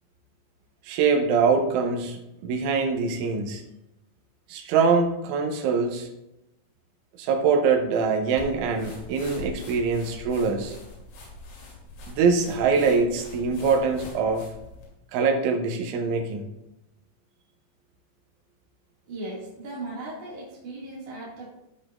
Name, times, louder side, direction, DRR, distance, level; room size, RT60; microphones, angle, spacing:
voice 1, 0.9-3.6 4.5-6.1 7.2-10.8 12.1-14.4 15.1-16.5, right 5 dB, 80° right, 3 dB, 3.4 m, -23 dB
sound 1, 8.4-14.9, left 2 dB, 85° left, 5.1 m, -43 dB
voice 2, 19.1-21.5, right 2 dB, 45° right, -6 dB, 2.5 m, -37 dB
15.5 x 6.3 x 2.5 m, 0.90 s
omnidirectional pair, 5.7 m